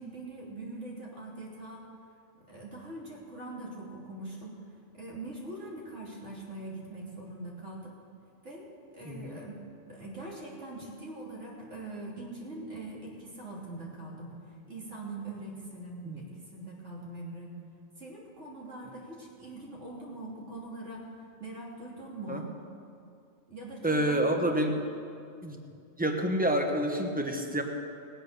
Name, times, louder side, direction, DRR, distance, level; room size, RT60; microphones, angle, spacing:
voice 1, 0.0-1.9 2.5-4.6 4.9-8.0 8.4-9.6 9.9-14.4 14.7-17.6 18.0-21.1 21.4-22.5 23.5-24.3, right 2 dB, 60° right, -4 dB, 3.2 m, -42 dB
voice 2, 9.0-9.4 16.0-16.2 22.3-22.4 23.8-24.8 25.4-25.6 26.0-27.6, right 1 dB, 5° right, 3 dB, 1.0 m, -28 dB
19.5 x 7.9 x 6.7 m, 2.5 s
omnidirectional pair, 1.4 m